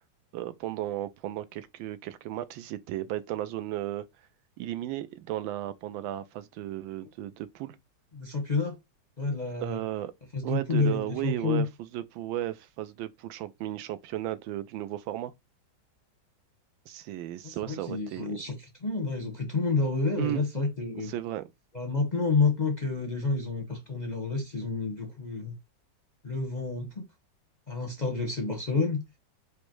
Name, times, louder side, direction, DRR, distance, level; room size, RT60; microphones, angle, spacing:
voice 1, 0.3-4.0 4.6-7.8 9.6-10.1 10.4-15.3 16.9-18.4 20.2-20.4 21.0-21.4, right 13 dB, 90° right, 1.4 m, -34 dB
voice 2, 8.1-8.8 9.2-9.8 10.3-11.6 17.4-18.5 18.8-21.1 21.7-25.5 26.2-27.0 27.7-29.0, left 4 dB, 40° left, 0.6 m, -29 dB
5.1 x 2.1 x 4.5 m
omnidirectional pair, 2.1 m